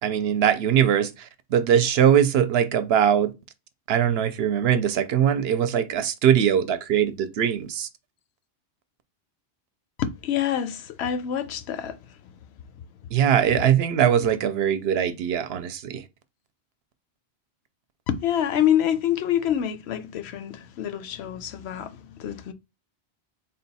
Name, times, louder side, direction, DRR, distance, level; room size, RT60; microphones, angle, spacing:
voice 1, 0.0-3.3 3.9-7.9 13.1-16.0, right 9 dB, 70° right, 0.8 m, -21 dB
voice 2, 10.0-12.0 13.5-13.7 14.2-14.3 18.1-22.5, left 10 dB, 70° left, 0.8 m, -26 dB
3.9 x 2.2 x 4.0 m
omnidirectional pair, 1.1 m